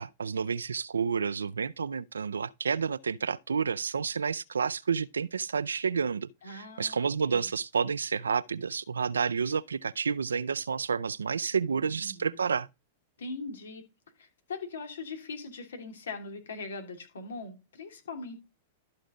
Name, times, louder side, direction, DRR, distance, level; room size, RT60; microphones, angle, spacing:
voice 1, 0.0-12.7, right 6 dB, 90° right, 0.4 m, -30 dB
voice 2, 6.4-7.5 11.5-12.4 13.2-13.8 14.2-18.4, left 3 dB, 80° left, 2.9 m, -41 dB
13.0 x 5.0 x 3.8 m
hypercardioid pair, 110°, 0 cm